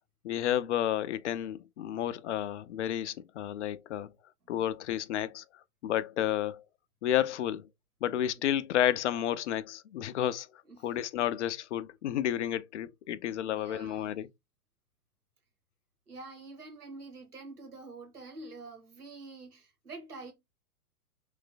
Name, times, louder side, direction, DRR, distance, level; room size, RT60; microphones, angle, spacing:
voice 1, 0.2-4.1 4.5-5.4 5.8-6.6 7.0-7.7 8.0-10.5 10.8-14.3, left 11 dB, 55° left, 0.5 m, -31 dB
voice 2, 13.4-14.1 16.1-20.3, right 3 dB, 80° right, 2.2 m, -47 dB
3.4 x 3.2 x 3.8 m
figure-of-eight pair, 110°, 45 cm